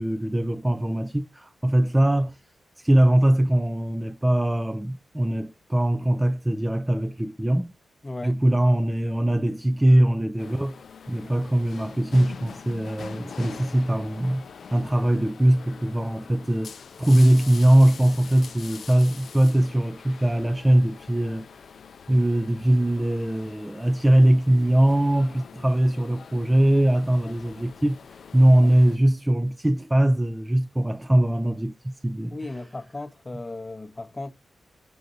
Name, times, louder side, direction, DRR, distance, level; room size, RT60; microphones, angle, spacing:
voice 1, 0.0-2.4 2.8-7.7 8.2-10.8 11.1-14.4 14.7-21.5 22.1-28.0 28.3-32.4, right 1 dB, 10° right, 0.4 m, -21 dB
voice 2, 8.0-8.4 28.6-28.8 32.3-34.3, left 2 dB, 20° left, 0.8 m, -36 dB
sound 1, 10.4-29.0, left 6 dB, 60° left, 0.4 m, -44 dB
6.4 x 6.3 x 2.6 m
wide cardioid pair, 155°, 0 cm